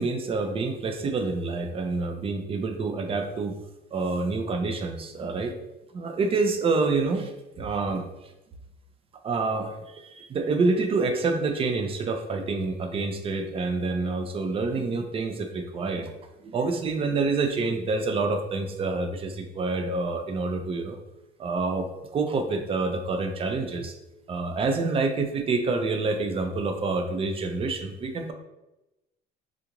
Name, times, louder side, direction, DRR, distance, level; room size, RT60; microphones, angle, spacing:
voice 1, 0.0-3.5 3.9-5.5 5.9-7.3 7.6-8.1 9.2-16.1 16.4-21.0 21.4-21.9 22.1-23.9 24.3-28.3, right 3 dB, 30° right, 5 dB, 0.5 m, -27 dB
3.7 x 2.4 x 2.9 m, 0.96 s
cardioid pair, 110°, 19 cm